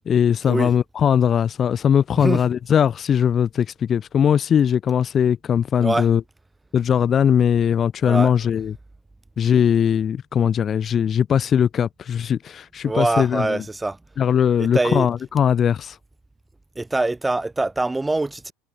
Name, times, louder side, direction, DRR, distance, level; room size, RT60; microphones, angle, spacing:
voice 1, 0.1-6.2 6.7-8.7 9.4-13.6 14.2-16.0, left 8 dB, 35° left, 1.0 m, -20 dB
voice 2, 12.8-14.0 14.6-15.1 16.8-18.5, right 2 dB, 10° right, 2.0 m, -23 dB
figure-of-eight pair, 70°, 0 cm